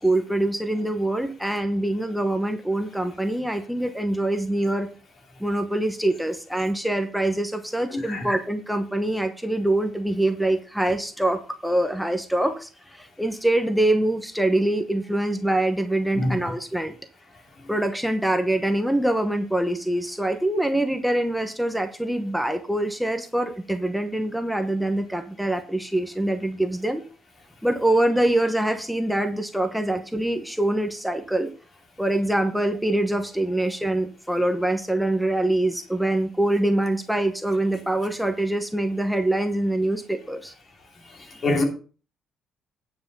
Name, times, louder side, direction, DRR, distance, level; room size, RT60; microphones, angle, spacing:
voice 1, 0.0-4.9 5.4-16.9 17.7-27.0 27.6-31.5 32.0-40.5 41.3-41.4, right 1 dB, ahead, 1.0 m, -24 dB
voice 2, 8.0-8.3 16.1-16.3 41.4-41.6, left 2 dB, 40° left, 3.0 m, -23 dB
9.7 x 5.7 x 5.4 m
cardioid pair, 110°, 0 cm